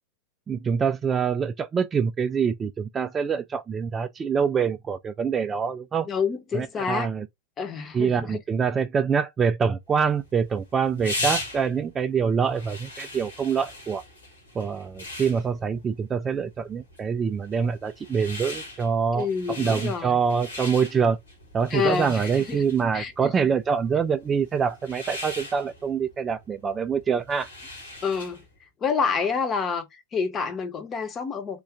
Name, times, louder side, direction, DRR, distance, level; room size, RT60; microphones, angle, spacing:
voice 1, 0.5-6.1 6.5-7.2 7.9-14.0 14.6-19.3 19.6-21.2 21.5-27.5, right 6 dB, 20° right, 0.3 m, -25 dB
voice 2, 6.1-7.1 7.6-8.4 19.1-20.2 21.7-22.6 22.9-23.3 28.0-28.4 28.8-31.6, left 6 dB, 25° left, 0.9 m, -28 dB
sound 1, 10.0-28.5, left 2 dB, 75° left, 1.5 m, -39 dB
3.8 x 2.4 x 3.4 m
figure-of-eight pair, 90°, 0 cm